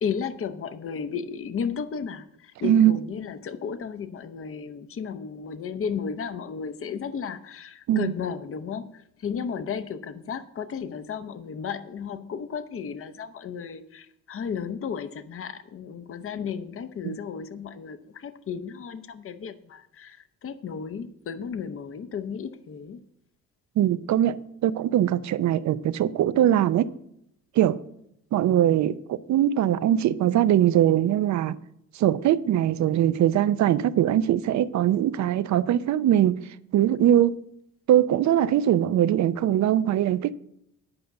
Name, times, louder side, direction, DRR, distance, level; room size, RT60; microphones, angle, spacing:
voice 1, 0.0-23.0, left 6 dB, 45° left, 0.8 m, -34 dB
voice 2, 23.8-24.4 24.6-26.9 27.6-27.8 28.3-31.6 31.9-36.4 36.7-37.4 37.9-40.3, right 11 dB, 65° right, 0.6 m, -21 dB
10.5 x 5.2 x 7.9 m
cardioid pair, 90°, 30 cm